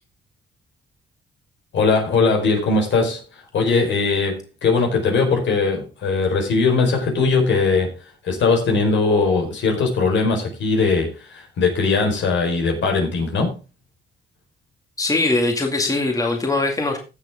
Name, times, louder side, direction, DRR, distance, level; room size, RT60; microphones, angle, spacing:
voice 1, 1.7-8.0 8.2-13.5, left 4 dB, 70° left, 2 dB, 4.7 m, -20 dB
voice 2, 15.0-17.0, left 2 dB, 15° left, 3 dB, 2.2 m, -21 dB
16.5 x 6.7 x 3.7 m, 0.30 s
cardioid pair, 90°, 20 cm